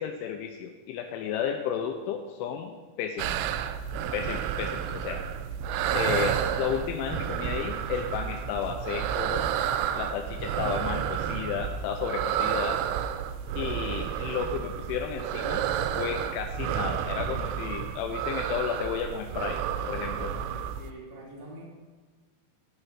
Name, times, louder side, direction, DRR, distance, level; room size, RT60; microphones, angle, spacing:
voice 1, 0.0-3.4 4.1-5.3 5.9-9.4 9.9-12.8 13.6-15.7 16.0-19.6 19.9-20.3, left 8 dB, 85° left, 5 dB, 2.8 m, -32 dB
sound 1, 3.2-20.9, right 9 dB, 85° right, 3.0 m, -31 dB
voice 2, 20.0-21.6, right 1 dB, 55° right, -5 dB, 1.0 m, -46 dB
9.9 x 5.9 x 5.6 m, 1.3 s
omnidirectional pair, 5.9 m